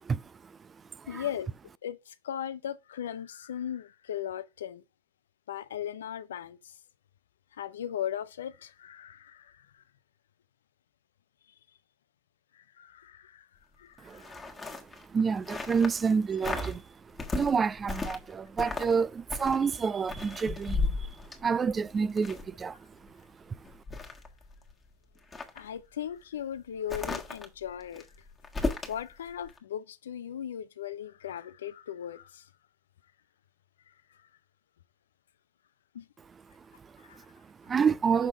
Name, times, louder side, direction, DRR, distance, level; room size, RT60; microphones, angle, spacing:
voice 1, 0.0-1.3 14.0-23.7 36.6-38.3, right 6 dB, 30° right, 0.3 m, -30 dB
voice 2, 1.1-1.5 1.8-4.8 5.5-6.8 7.5-9.8 12.5-13.5 13.8-14.3 25.5-28.1 28.9-32.5 35.9-36.1 37.0-37.3, left 10 dB, 85° left, 0.5 m, -38 dB
sound 1, 14.1-16.1 16.4-16.8 17.2-18.3 18.6-19.0 19.3-22.6 23.1-23.2 23.6-24.7 25.2-25.6 26.9-29.0 29.4-29.6, left 3 dB, 20° left, 1.5 m, -35 dB
6.5 x 3.7 x 5.0 m
hypercardioid pair, 85°, 0 cm